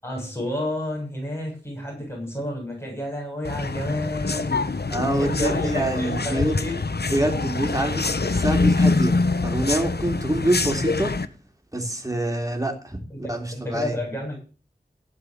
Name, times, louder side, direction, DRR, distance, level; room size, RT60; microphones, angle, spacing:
voice 1, 0.0-6.8 13.1-14.4, left 1 dB, 15° left, -1 dB, 7.1 m, -31 dB
sound 1, 3.4-11.3, left 3 dB, 70° left, 0.9 m, -25 dB
voice 2, 4.9-6.5 7.1-9.2 9.4-11.1 11.7-13.0 13.3-14.0, right 1 dB, 20° right, 3 dB, 3.5 m, -25 dB
15.5 x 5.5 x 8.1 m, 0.36 s
wide cardioid pair, 45°, 17 cm